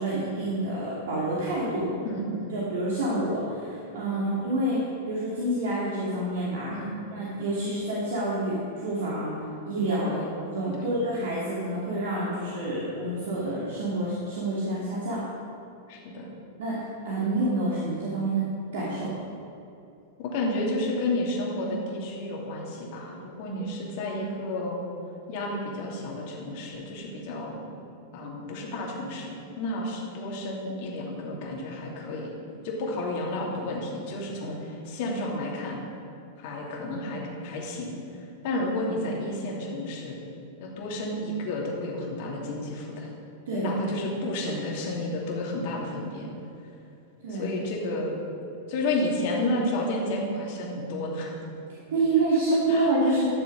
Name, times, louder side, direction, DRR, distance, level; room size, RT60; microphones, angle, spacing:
voice 1, 0.0-1.9 2.5-6.7 7.1-9.3 9.7-15.2 16.6-18.5 18.7-19.1 23.5-23.6 43.5-43.7 47.2-47.5 51.7-53.3, right 1 dB, 65° right, -6 dB, 2.5 m, -28 dB
voice 2, 2.0-2.6 4.1-4.4 6.7-7.0 10.0-10.3 10.8-10.9 15.9-16.3 20.2-24.8 25.3-27.6 28.1-32.3 32.6-35.8 36.4-37.9 38.4-40.2 40.6-43.1 43.5-46.3 47.3-48.2 48.7-51.4 52.7-53.2, left 1 dB, 55° left, -2 dB, 2.9 m, -31 dB
13.5 x 7.0 x 5.5 m, 2.7 s
hypercardioid pair, 100°, 0 cm